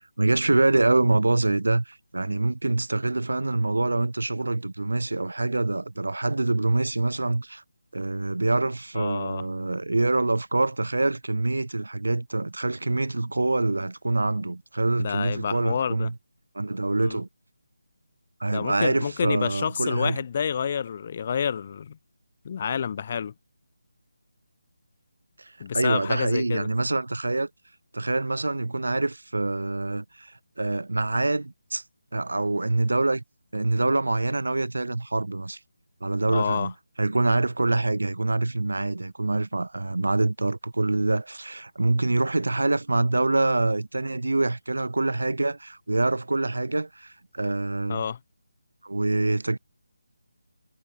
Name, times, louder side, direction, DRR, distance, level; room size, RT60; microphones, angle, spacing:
voice 1, 0.2-7.6 7.9-16.1 16.5-17.3 18.4-20.2 25.4-27.5 27.9-31.8 32.1-33.2 33.5-35.6 36.0-36.7 37.0-48.0 48.8-49.6, right 2 dB, 80° right, 1.3 m, -25 dB
voice 2, 8.9-9.4 15.0-16.1 17.0-17.2 18.5-22.0 22.4-23.3 25.6-26.7 36.3-36.7 47.9-48.2, left 7 dB, 35° left, 0.4 m, -29 dB
figure-of-eight pair, 165°, 0 cm